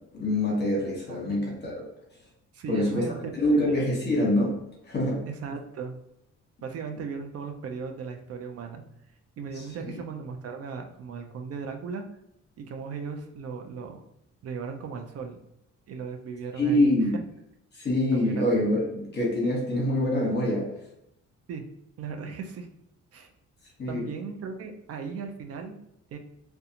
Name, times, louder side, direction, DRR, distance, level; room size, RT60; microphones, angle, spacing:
voice 1, 0.1-1.8 2.7-3.1 3.3-4.6 4.8-5.2 9.9-10.0 16.6-17.2 17.8-20.7 23.8-24.0, left 1 dB, 35° left, -3 dB, 1.1 m, -25 dB
voice 2, 2.5-3.3 3.7-3.8 5.3-6.0 6.6-8.8 9.4-12.0 12.6-14.0 14.4-15.4 15.9-16.9 18.1-18.4 21.5-21.6 22.0-22.7 23.1-23.3 23.9-25.8 26.1-26.2, right 5 dB, 55° right, 4 dB, 0.4 m, -37 dB
2.4 x 2.2 x 2.8 m, 0.82 s
cardioid pair, 90°, 30 cm